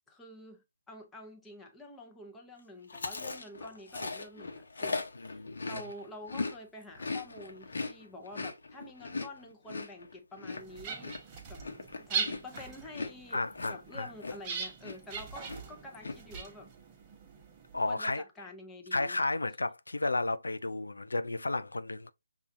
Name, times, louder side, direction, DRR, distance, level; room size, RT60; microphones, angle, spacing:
voice 1, 0.1-11.2 11.5-11.7 12.0-16.7 17.8-19.2, left 1 dB, 10° left, 0.6 m, -48 dB
Chewing mastication, 2.9-6.6 6.8-14.6 14.8-15.2 15.4-16.1, left 3 dB, 65° left, 0.8 m, -39 dB
voice 2, 5.2-5.8 13.3-14.1 17.7-18.2 18.9-22.1, left 2 dB, 85° left, 0.3 m, -33 dB
sound 1, 10.5-17.9, right 6 dB, 20° right, 0.8 m, -41 dB
5.4 x 2.3 x 2.6 m
figure-of-eight pair, 150°, 0 cm